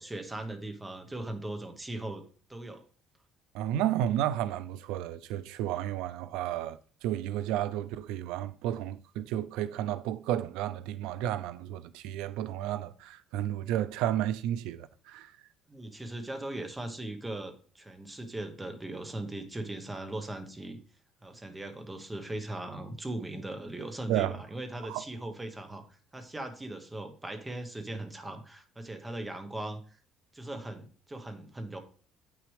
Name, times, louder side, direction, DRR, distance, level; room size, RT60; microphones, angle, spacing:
voice 1, 0.0-2.2 2.5-2.8 15.7-20.8 21.2-25.8 26.1-30.0 30.3-31.8, right 1 dB, 10° right, 0.9 m, -39 dB
voice 2, 3.5-15.3 24.1-24.4 24.9-25.0, right 12 dB, 85° right, 0.4 m, -32 dB
8.4 x 6.2 x 3.2 m
cardioid pair, 160°, 0 cm